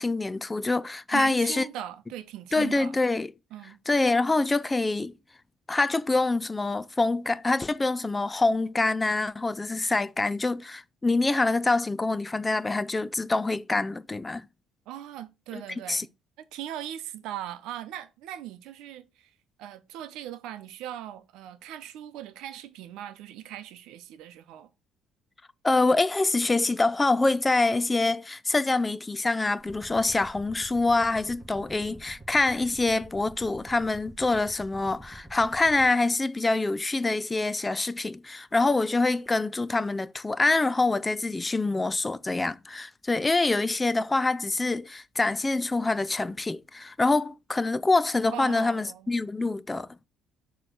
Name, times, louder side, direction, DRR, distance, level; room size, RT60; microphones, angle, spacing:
voice 1, 0.0-1.6 2.5-3.3 3.9-5.2 5.7-14.5 15.5-15.6 15.9-16.1 25.6-50.1, left 3 dB, 15° left, 0.4 m, -25 dB
voice 2, 1.1-3.0 3.5-3.8 14.9-16.1 16.4-24.7 48.3-49.1, right 11 dB, 80° right, 0.7 m, -39 dB
sound 1, 29.6-35.8, right 1 dB, 10° right, 2.8 m, -48 dB
6.8 x 3.1 x 5.6 m
cardioid pair, 110°, 0 cm